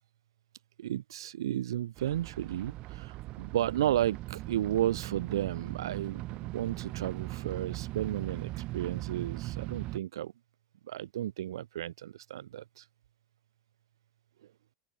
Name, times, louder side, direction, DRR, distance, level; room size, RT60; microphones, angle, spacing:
voice 1, 0.8-10.3 10.9-12.8, right 12 dB, 85° right, 0.8 m, -33 dB
sound 1, 2.0-10.0, right 19 dB, 50° right, 7.6 m, -39 dB
hypercardioid pair, 115°, 2 cm